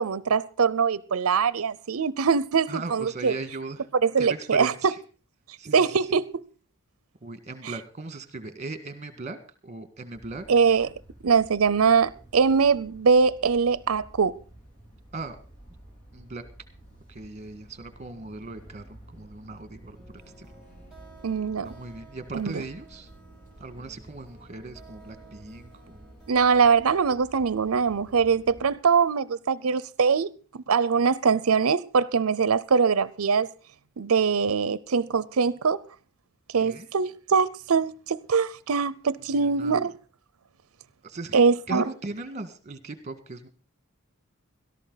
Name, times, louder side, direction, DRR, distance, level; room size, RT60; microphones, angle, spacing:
voice 1, 0.0-3.4 4.0-4.9 5.7-6.4 10.5-10.9 11.2-14.4 21.2-21.7 22.3-22.5 26.3-33.5 34.0-35.8 36.5-39.9 41.3-41.8, right 5 dB, 80° right, 0.6 m, -22 dB
voice 2, 2.7-3.9 4.2-5.0 5.6-6.1 7.2-9.4 9.6-10.5 15.1-15.4 16.1-16.4 17.1-20.5 21.6-23.1 23.6-26.0 36.6-36.9 39.3-39.9 41.0-43.5, right 3 dB, 35° right, 1.8 m, -38 dB
sound 1, 10.1-28.7, right 1 dB, 40° left, 4.7 m, -51 dB
sound 2, 19.9-27.5, right 4 dB, ahead, 4.9 m, -54 dB
17.0 x 13.5 x 4.0 m
head